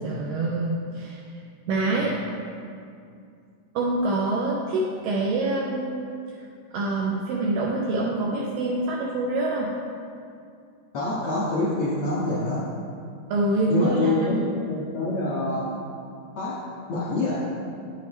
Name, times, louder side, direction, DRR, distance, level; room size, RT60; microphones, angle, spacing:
voice 1, 0.0-1.2 1.7-2.2 3.8-6.1 6.7-9.7 13.3-14.5, right 2 dB, 85° right, -2 dB, 2.0 m, -25 dB
voice 2, 10.9-12.7 13.7-14.4 14.6-15.8 16.4-17.5, left 2 dB, 70° left, -9 dB, 1.4 m, -26 dB
8.6 x 6.8 x 3.2 m, 2.4 s
omnidirectional pair, 4.5 m